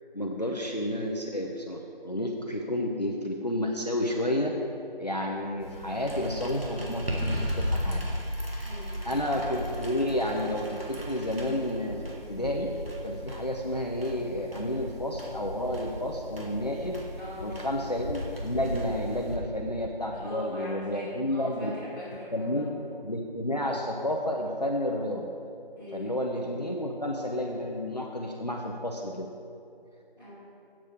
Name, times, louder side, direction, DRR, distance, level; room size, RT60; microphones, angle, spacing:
voice 1, 0.1-4.5 5.0-8.1 9.0-12.0 12.3-12.7 13.0-17.0 17.4-21.7 22.3-22.7 23.0-25.3 25.9-29.3, left 1 dB, 45° left, 0 dB, 0.6 m, -31 dB
sound 1, 5.6-19.4, equal, 80° right, 2.0 m, -36 dB
voice 2, 8.6-9.1 17.2-17.7 20.1-22.7 25.7-26.2 30.2-30.3, left 1 dB, ahead, -26 dB, 2.2 m, -42 dB
8.1 x 7.3 x 4.8 m, 2.6 s
figure-of-eight pair, 175°, 29 cm